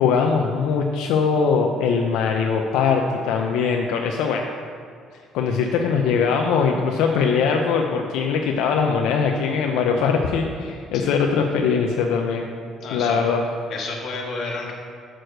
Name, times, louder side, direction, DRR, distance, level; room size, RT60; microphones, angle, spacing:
voice 1, 0.0-4.5 5.3-12.4 12.9-13.4, left 5 dB, 90° left, 2 dB, 0.6 m, -21 dB
voice 2, 12.8-13.2 13.7-14.7, left 3 dB, 55° left, -1 dB, 1.7 m, -31 dB
6.5 x 6.2 x 6.5 m, 2.2 s
cardioid pair, 130°, 0 cm